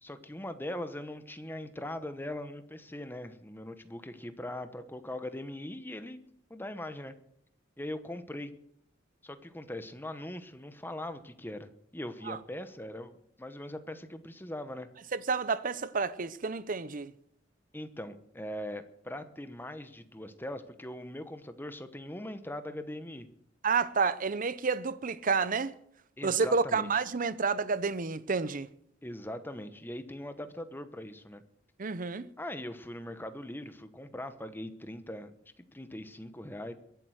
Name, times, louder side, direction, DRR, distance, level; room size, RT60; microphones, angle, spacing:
voice 1, 0.0-6.2 6.5-7.1 7.8-8.6 9.2-14.9 17.7-23.3 26.2-27.0 29.0-31.4 32.4-35.3 35.7-36.7, left 1 dB, 10° left, 1.0 m, -41 dB
voice 2, 15.3-17.1 23.6-25.7 26.2-28.7 31.8-32.3, right 5 dB, 45° right, 0.7 m, -29 dB
22.0 x 7.7 x 6.4 m
head